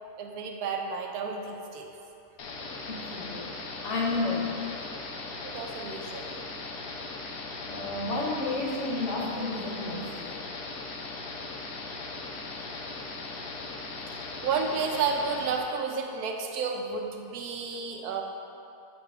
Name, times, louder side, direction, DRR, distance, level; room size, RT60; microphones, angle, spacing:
voice 1, 0.2-1.9 5.4-6.3 14.1-18.2, right 5 dB, 90° right, 3 dB, 1.1 m, -31 dB
sound 1, 2.4-15.6, left 3 dB, 80° left, 1.2 m, -39 dB
voice 2, 2.9-3.5 3.8-4.6 7.6-10.4, left 3 dB, 60° left, -2 dB, 1.0 m, -31 dB
8.1 x 6.1 x 2.4 m, 2.8 s
omnidirectional pair, 1.6 m